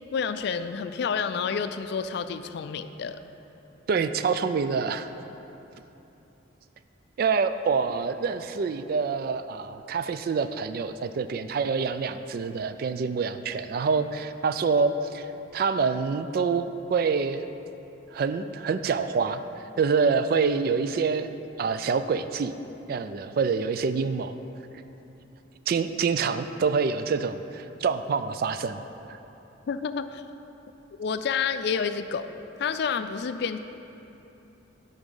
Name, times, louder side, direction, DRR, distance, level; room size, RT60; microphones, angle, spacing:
voice 1, 0.1-3.2 29.7-30.2 31.0-32.3 32.6-33.6, left 6 dB, 60° left, 11 dB, 0.3 m, -29 dB
voice 2, 3.9-5.1 7.2-15.3 15.5-17.5 18.1-19.4 19.8-21.3 21.6-22.5 22.9-24.4 25.7-28.8 29.1-29.2, right 5 dB, 50° right, 11 dB, 0.3 m, -26 dB
10.5 x 3.9 x 5.5 m, 3.0 s
head